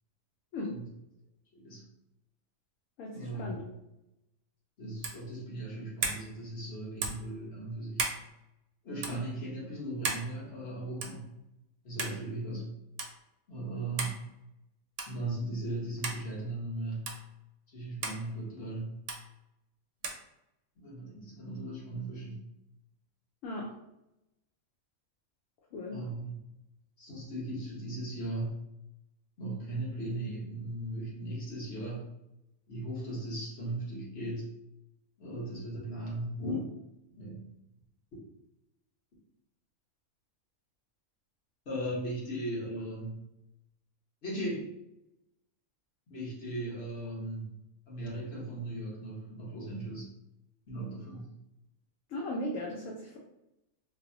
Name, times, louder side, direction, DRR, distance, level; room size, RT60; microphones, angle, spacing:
voice 1, 1.5-1.9 3.1-3.6 4.8-8.1 8.8-11.3 11.8-12.7 13.5-14.2 15.1-17.1 17.7-19.0 20.8-22.5 25.9-26.4 27.0-28.6 29.4-32.1 32.7-34.5 35.2-36.7 37.1-37.5 41.6-43.2 44.2-44.7 46.1-47.5 47.9-50.1 50.7-51.3, right 1 dB, 50° left, -5 dB, 1.3 m, -37 dB
voice 2, 3.0-3.6 23.4-23.7 25.7-26.0 52.1-53.2, left 1 dB, 70° left, -1 dB, 0.9 m, -37 dB
sound 1, 5.0-5.2 6.0-6.2 7.0-7.3 8.0-8.2 9.0-9.2 10.0-10.3 11.0-11.2 12.0-12.2 13.0-13.1 14.0-14.2 15.0-15.2 16.0-16.2 17.1-17.2 18.0-18.2 19.1-19.2 20.0-20.2, right 4 dB, 65° right, 0.8 m, -34 dB
3.8 x 2.1 x 2.6 m, 0.87 s
omnidirectional pair, 1.5 m